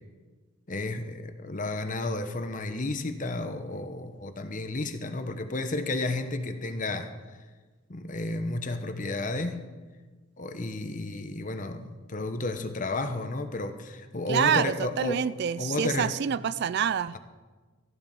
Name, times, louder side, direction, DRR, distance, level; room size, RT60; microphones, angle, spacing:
voice 1, 0.7-7.1 7.9-9.7 10.4-15.3 15.6-16.1, left 2 dB, 40° left, 8 dB, 1.0 m, -32 dB
voice 2, 14.3-17.2, right 8 dB, 55° right, 17 dB, 0.3 m, -27 dB
14.5 x 10.5 x 5.4 m, 1.3 s
head